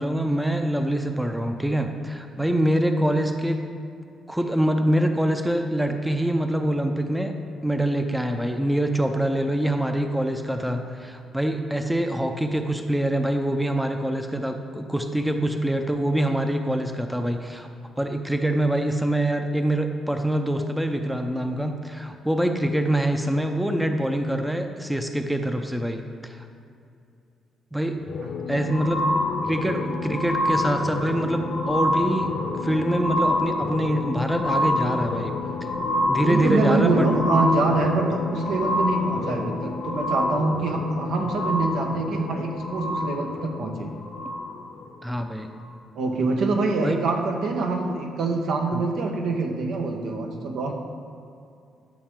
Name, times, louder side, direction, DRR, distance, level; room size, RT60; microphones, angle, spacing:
voice 1, 0.0-3.6 4.3-7.3 7.6-17.7 18.0-26.4 27.7-28.0 28.5-29.1 29.4-32.3 32.6-35.3 35.6-35.7 36.1-37.1 45.0-45.5 46.8-47.0 48.7-48.8, right 1 dB, 5° right, 5 dB, 0.6 m, -25 dB
sound 1, 28.0-44.8 45.6-45.7, left 2 dB, 65° left, 0.9 m, -27 dB
voice 2, 36.2-43.9 45.9-50.7, right 3 dB, 75° right, 2 dB, 1.1 m, -25 dB
11.5 x 6.4 x 3.7 m, 2.5 s
cardioid pair, 90°, 0 cm